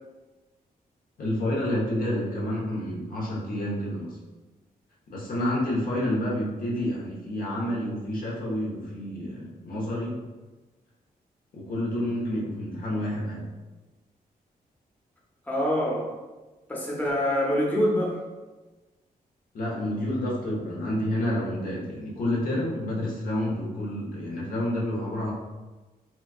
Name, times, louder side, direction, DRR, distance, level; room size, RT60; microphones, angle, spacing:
voice 1, 1.2-4.2 5.1-10.2 11.5-13.5 19.5-25.3, left 1 dB, 60° left, -4 dB, 1.0 m, -29 dB
voice 2, 15.5-16.0 16.7-18.2, equal, 10° left, -3 dB, 0.7 m, -25 dB
4.3 x 2.3 x 2.4 m, 1.2 s
cardioid pair, 75°, 16 cm